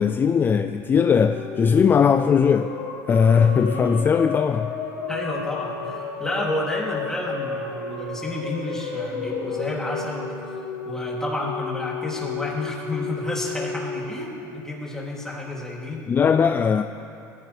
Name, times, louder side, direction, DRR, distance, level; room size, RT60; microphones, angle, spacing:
voice 1, 0.0-2.7 3.1-4.7 16.1-16.8, left 6 dB, 25° left, 8 dB, 0.4 m, -19 dB
sound 1, 0.9-15.3, left 5 dB, 75° left, 1.7 m, -33 dB
Wind instrument woodwind instrument, 3.2-10.9, right 2 dB, 50° right, 3.9 m, -39 dB
voice 2, 5.1-10.3 10.8-16.0, left 2 dB, 5° left, -4 dB, 3.0 m, -30 dB
21.0 x 14.5 x 3.4 m, 2.6 s
supercardioid pair, 130°, 8 cm